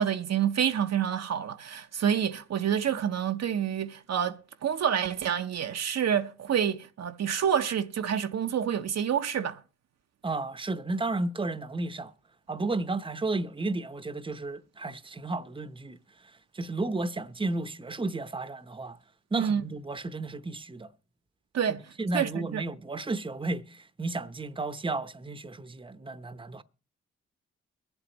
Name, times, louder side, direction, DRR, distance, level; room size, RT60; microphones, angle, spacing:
voice 1, 0.0-9.6 19.3-19.6 21.5-21.9 22.1-22.6, right 8 dB, 60° right, 0.7 m, -28 dB
voice 2, 10.2-12.1 12.5-16.0 16.5-19.0 19.3-20.9 21.7-26.6, right 2 dB, 15° right, 0.8 m, -33 dB
23.0 x 8.0 x 3.0 m
supercardioid pair, 45°, 29 cm